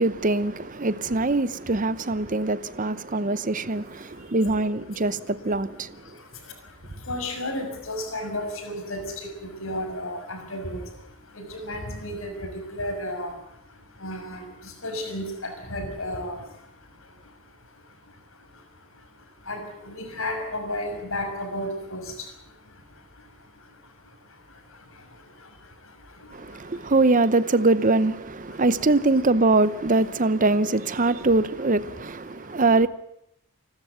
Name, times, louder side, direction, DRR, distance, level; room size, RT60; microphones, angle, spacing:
voice 1, 0.0-5.9 26.3-32.9, right 2 dB, 35° right, 0.8 m, -23 dB
voice 2, 2.2-4.4 5.0-26.9 28.5-28.7 31.0-31.3 32.3-32.7, left 1 dB, 65° left, 6.2 m, -36 dB
28.5 x 13.0 x 9.4 m
head